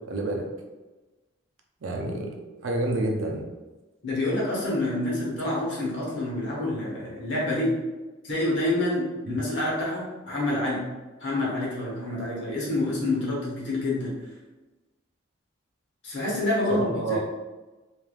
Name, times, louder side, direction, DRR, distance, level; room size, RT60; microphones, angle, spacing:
voice 1, 0.1-0.5 1.8-3.4 9.3-9.4 16.7-17.2, right 2 dB, 75° right, 2 dB, 0.5 m, -28 dB
voice 2, 4.0-7.8 8.2-10.9 11.2-14.1 16.0-17.2, left 1 dB, 60° left, -5 dB, 1.0 m, -27 dB
3.2 x 2.5 x 2.4 m, 1.2 s
head